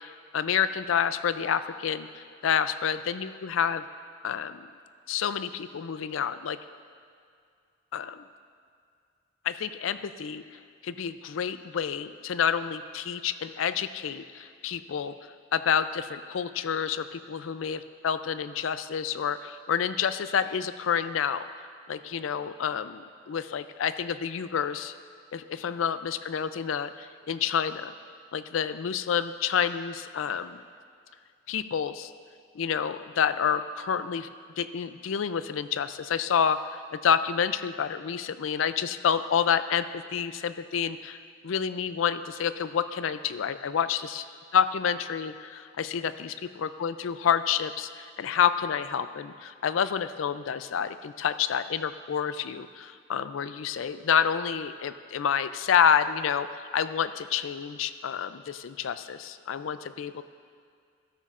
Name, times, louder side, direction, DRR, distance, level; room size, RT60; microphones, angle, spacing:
voice 1, 0.0-3.8 4.2-4.7 5.1-6.6 7.9-8.2 9.4-10.4 10.8-15.2 15.5-21.5 21.9-24.9 25.3-27.9 28.3-30.6 31.5-32.1 32.5-41.2 41.4-44.2 44.5-46.3 46.6-60.2, left 7 dB, 85° left, 12 dB, 0.4 m, -28 dB
14.0 x 12.5 x 2.5 m, 2.2 s
head